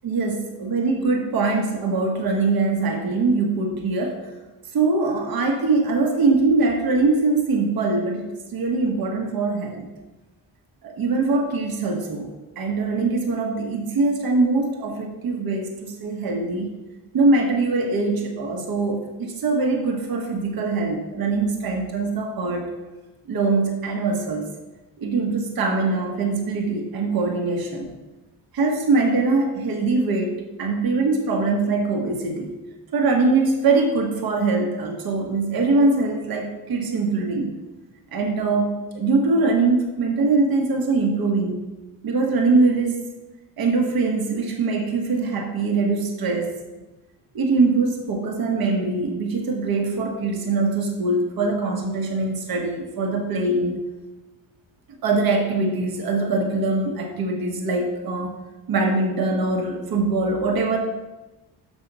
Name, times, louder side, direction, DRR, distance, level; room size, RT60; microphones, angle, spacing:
voice 1, 0.0-4.3 4.7-9.9 10.8-16.7 17.1-22.7 23.3-24.5 25.0-27.9 28.5-32.5 32.9-37.6 38.1-41.7 42.0-43.0 43.6-46.5 47.3-53.8 55.0-58.3 58.7-60.8, right 3 dB, 65° right, 2 dB, 1.4 m, -22 dB
7.2 x 5.4 x 5.4 m, 1.1 s
cardioid pair, 110°, 39 cm